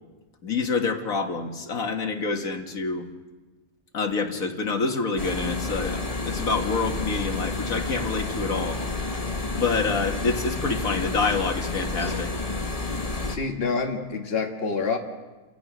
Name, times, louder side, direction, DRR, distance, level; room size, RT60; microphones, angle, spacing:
voice 1, 0.4-3.1 3.9-9.2 9.5-12.3, left 4 dB, 75° left, 4 dB, 2.2 m, -27 dB
sound 1, 5.2-13.4, left 2 dB, 25° left, 1.3 m, -30 dB
voice 2, 13.3-15.0, left 4 dB, 45° left, 2 dB, 2.0 m, -27 dB
29.5 x 17.0 x 6.3 m, 1.2 s
omnidirectional pair, 1.5 m